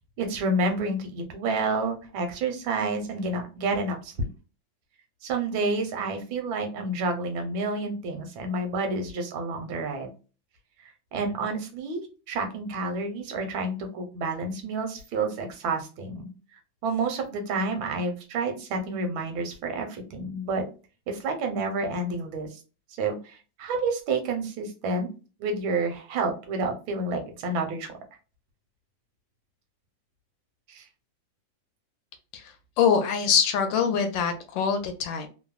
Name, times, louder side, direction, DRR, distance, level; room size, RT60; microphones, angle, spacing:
voice 1, 0.2-4.3 5.2-10.1 10.8-16.3 16.8-20.6 21.1-22.6 23.0-25.1 25.4-28.0 30.7-30.8, right 3 dB, 80° right, 5 dB, 1.4 m, -29 dB
voice 2, 32.3-35.3, left 7 dB, 75° left, 6 dB, 1.2 m, -24 dB
3.4 x 2.0 x 2.3 m, 0.34 s
omnidirectional pair, 2.1 m